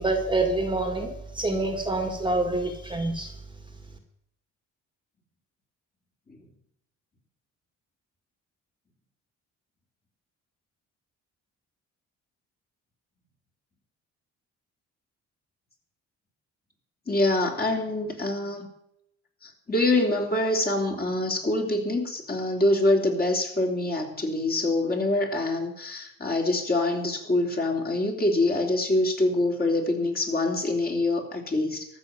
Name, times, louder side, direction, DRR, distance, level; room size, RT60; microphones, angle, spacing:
voice 1, 0.0-3.3, right 2 dB, 15° right, 6 dB, 1.9 m, -26 dB
voice 2, 17.1-18.7 19.4-31.9, left 2 dB, 30° left, 1 dB, 3.5 m, -25 dB
14.0 x 6.6 x 9.4 m, 0.78 s
cardioid pair, 90°, 30 cm